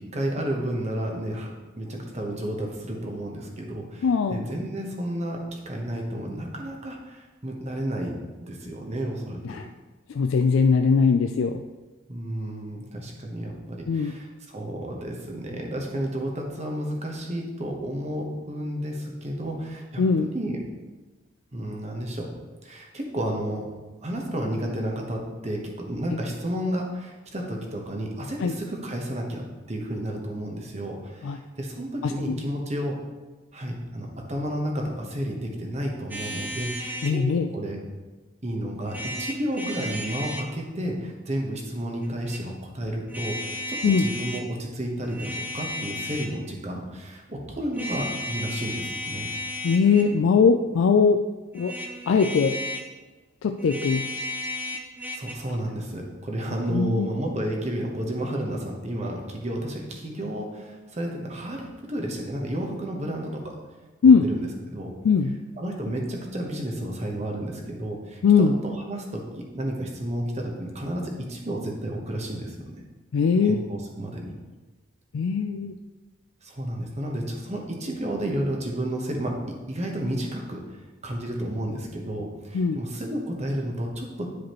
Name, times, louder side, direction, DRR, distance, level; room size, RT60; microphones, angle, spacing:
voice 1, 0.0-1.5 1.8-8.1 8.4-9.6 12.1-20.1 20.3-20.6 21.5-22.3 22.6-23.7 24.0-33.0 33.5-37.8 38.4-49.3 55.1-63.6 64.2-64.9 65.6-72.6 73.4-74.3 76.4-80.6 81.0-84.3, right 1 dB, 35° right, 0 dB, 1.1 m, -31 dB
voice 2, 4.0-4.5 9.4-9.7 10.1-11.6 13.9-14.2 20.0-20.3 28.4-28.5 31.2-31.4 32.0-32.4 37.0-37.5 43.8-44.0 49.6-51.2 51.5-51.7 52.1-52.6 53.4-54.1 56.7-57.1 64.0-64.3 65.0-65.3 68.2-68.6 73.1-73.6 75.1-75.8 82.5-82.8, left 5 dB, 75° left, 6 dB, 0.3 m, -20 dB
sound 1, 36.1-37.2 38.9-40.5 42.0-42.4 43.1-44.5 45.0-46.4 47.7-50.2 51.5-52.9 53.6-55.3, left 1 dB, 10° right, 0.6 m, -34 dB
10.5 x 4.8 x 3.1 m, 1.2 s
head